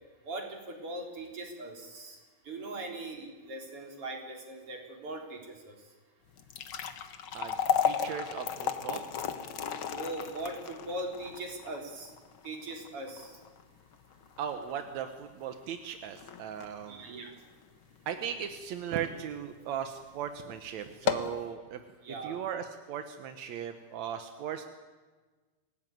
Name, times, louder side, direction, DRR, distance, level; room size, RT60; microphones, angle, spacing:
voice 1, 0.2-2.2 2.5-5.4 5.6-5.7 9.9-12.1 12.4-13.3 16.9-17.3 22.0-22.4, right 2 dB, 35° right, 2 dB, 4.4 m, -40 dB
sound 1, 6.3-18.6 19.0-19.1 19.8-20.0 20.3-20.4 20.9-21.4, left 8 dB, 80° left, 1.1 m, -35 dB
voice 2, 7.8-9.1 14.4-17.1 18.1-21.8 22.2-24.6, right 9 dB, 65° right, 8 dB, 1.8 m, -37 dB
27.0 x 17.5 x 9.3 m, 1.4 s
omnidirectional pair, 4.5 m